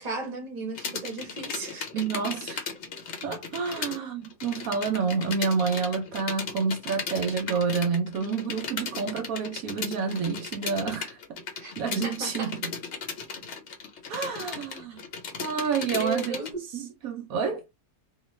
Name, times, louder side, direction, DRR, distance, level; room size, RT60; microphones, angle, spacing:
voice 1, 0.0-2.1 3.7-3.9 11.6-11.7 12.0-12.5 15.5-16.9, right 3 dB, 35° right, 0.8 m, -35 dB
sound 1, 0.7-4.0 4.2-16.5, left 5 dB, 55° left, 0.9 m, -36 dB
voice 2, 1.9-2.6 3.2-11.4 11.8-12.7 14.1-15.0 15.4-16.4 16.7-17.7, right 5 dB, 70° right, 1.0 m, -29 dB
2.5 x 2.3 x 3.0 m
omnidirectional pair, 1.6 m